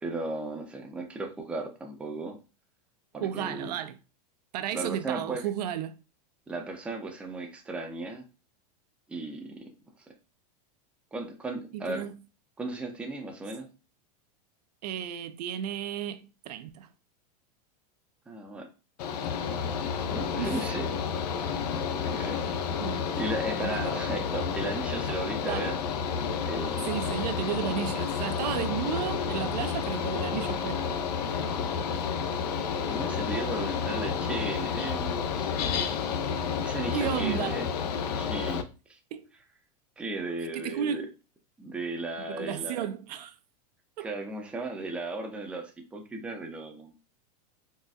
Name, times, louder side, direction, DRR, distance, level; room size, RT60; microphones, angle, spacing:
voice 1, 0.0-2.4 3.1-3.8 4.7-5.4 6.5-8.2 9.1-9.6 11.1-12.1 12.6-13.7 18.3-18.7 20.1-20.9 22.0-22.4 23.1-25.7 26.5-26.9 32.9-35.5 36.6-37.7 38.2-39.0 40.0-41.0 41.6-42.8 44.0-46.9, right 2 dB, 5° right, 0.4 m, -35 dB
voice 2, 3.2-4.0 4.5-6.0 11.7-12.2 14.8-16.9 20.2-20.7 22.8-23.0 23.6-24.0 25.4-25.7 26.8-31.0 36.9-37.6 39.1-39.3 40.5-41.1 42.3-43.4 44.0-44.1, right 9 dB, 80° right, 0.5 m, -33 dB
Mechanical fan, 19.0-38.6, left 6 dB, 80° left, 0.5 m, -30 dB
sound 1, 25.8-35.3, left 2 dB, 40° left, 1.4 m, -48 dB
4.1 x 2.2 x 2.3 m
supercardioid pair, 140°, 20 cm